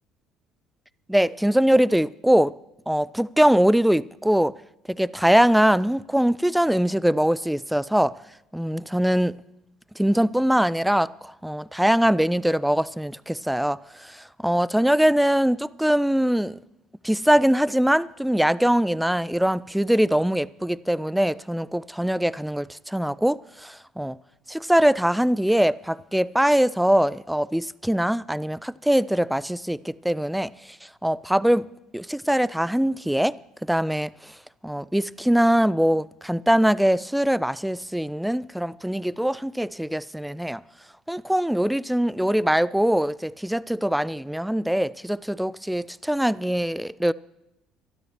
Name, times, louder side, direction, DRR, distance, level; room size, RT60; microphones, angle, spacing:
voice 1, 1.1-2.5 2.9-4.5 4.9-8.1 8.5-9.3 10.0-16.6 17.0-24.2 24.5-31.7 31.9-33.4 33.6-34.3 34.6-40.6 41.1-47.1, equal, 5° right, 0.4 m, -22 dB
23.5 x 13.0 x 3.1 m
figure-of-eight pair, 60°, 0 cm